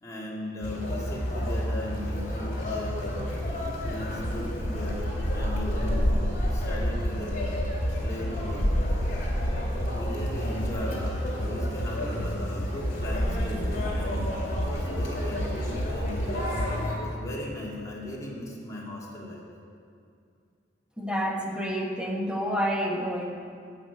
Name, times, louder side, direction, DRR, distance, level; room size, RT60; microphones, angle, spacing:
voice 1, 0.0-3.3 3.8-6.1 6.4-7.6 8.0-9.0 9.9-16.5 16.9-19.5, left 1 dB, 20° left, -4 dB, 2.1 m, -38 dB
Conversation, 0.6-17.0, equal, 45° left, 2.8 m, -29 dB
voice 2, 21.0-23.2, equal, 5° right, 0 dB, 1.2 m, -29 dB
12.0 x 6.2 x 8.4 m, 2.3 s
head